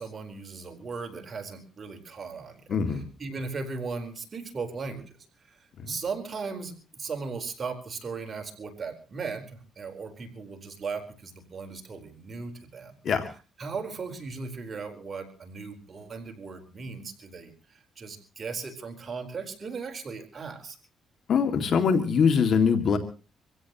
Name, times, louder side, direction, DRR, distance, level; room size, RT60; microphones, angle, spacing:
voice 1, 0.0-2.6 2.9-5.1 5.5-5.6 5.8-13.0 13.6-20.8, right 4 dB, 40° right, 5 dB, 4.2 m, -37 dB
voice 2, 2.7-3.0 5.8-6.0 13.0-13.3 21.3-23.0, left 6 dB, 60° left, 7 dB, 2.2 m, -23 dB
25.5 x 16.5 x 3.0 m, 0.35 s
cardioid pair, 90°, 0 cm